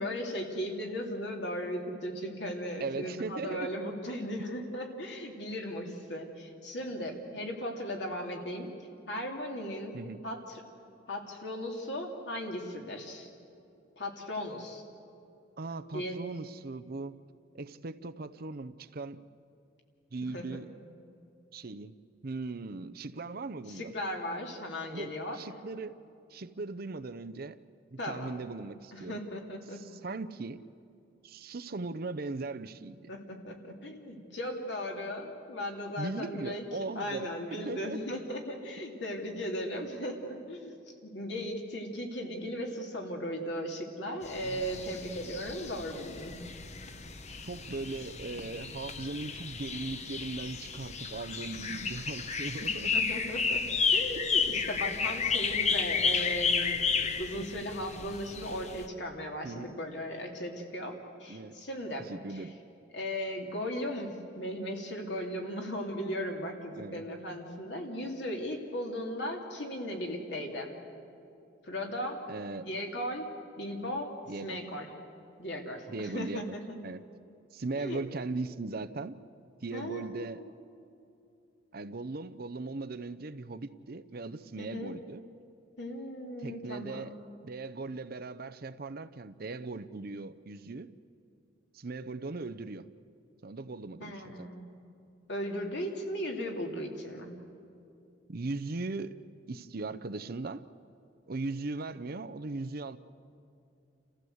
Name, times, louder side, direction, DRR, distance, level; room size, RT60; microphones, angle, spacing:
voice 1, 0.0-8.7 9.1-10.0 10.2-10.6 11.1-13.3 14.0-14.8 15.9-16.2 20.2-20.6 23.7-25.4 28.0-28.4 28.9-29.9 33.1-36.6 36.9-46.4 51.5-51.7 52.6-53.6 53.9-60.9 61.2-62.5 62.9-70.7 71.6-72.2 72.6-74.1 74.4-74.9 75.4-76.8 77.8-78.0 79.7-80.5 84.6-85.0 85.8-87.2 94.0-94.8 95.3-97.4, equal, 65° left, 1 dB, 2.9 m, -37 dB
voice 2, 2.8-3.7 9.9-10.2 15.6-17.2 17.5-19.2 20.1-20.7 21.5-21.9 22.2-23.9 24.9-26.0 26.3-27.6 27.9-29.2 29.7-30.6 31.2-33.1 36.0-38.0 44.4-44.7 47.4-52.9 54.1-54.3 59.4-59.7 61.3-61.6 62.0-62.5 66.7-67.0 72.3-72.7 74.3-74.6 75.9-76.5 76.8-77.0 77.5-79.2 79.6-80.4 81.7-85.2 86.4-87.1 87.4-90.9 91.7-92.9 93.4-94.5 98.3-99.2 99.5-100.7 101.3-103.0, right 3 dB, 55° right, 11 dB, 0.7 m, -39 dB
sound 1, 44.3-58.9, left 5 dB, 35° left, 0.9 m, -32 dB
29.0 x 15.0 x 8.0 m, 2.7 s
head